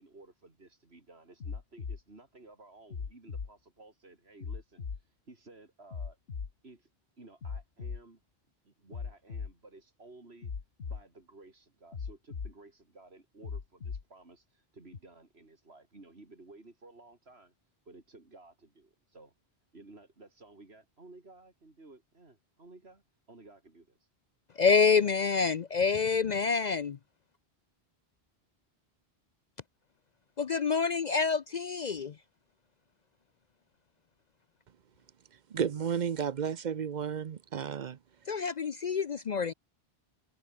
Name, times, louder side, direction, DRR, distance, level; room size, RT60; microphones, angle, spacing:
voice 1, 0.0-4.8 5.3-6.2 6.6-6.9 7.2-8.2 8.7-10.5 10.8-17.5 17.9-19.3 19.7-23.0 23.3-23.9, right 2 dB, 90° right, 3.8 m, -55 dB
sound 1, 1.4-2.0 2.9-3.5 4.4-5.0 5.9-6.5 7.4-8.0 8.9-9.5 10.4-11.0 11.9-12.5 13.4-14.0 14.9-15.0, left 5 dB, 80° left, 1.7 m, -38 dB
voice 2, 24.6-27.0 30.4-32.1 38.3-39.5, left 5 dB, 50° left, 0.7 m, -27 dB
voice 3, 35.5-38.0, right 7 dB, 50° right, 0.7 m, -32 dB
omnidirectional pair, 1.0 m